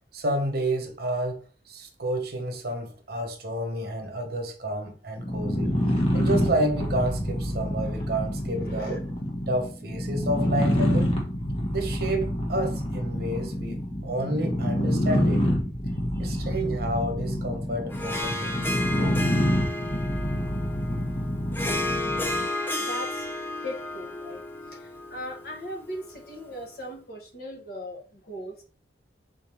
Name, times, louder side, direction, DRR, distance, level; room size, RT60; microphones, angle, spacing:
voice 1, 0.1-5.8 6.1-9.0 9.5-11.1 11.7-15.6 16.2-19.2, right 1 dB, 60° right, 0.8 m, -30 dB
sound 1, 5.2-22.5, equal, 30° left, 1.1 m, -27 dB
voice 2, 8.6-9.0 15.9-16.4 22.8-24.4 24.7-28.6, equal, 60° left, 1.2 m, -39 dB
Harp, 17.9-26.6, left 2 dB, 10° left, 0.5 m, -33 dB
3.8 x 3.4 x 2.9 m
head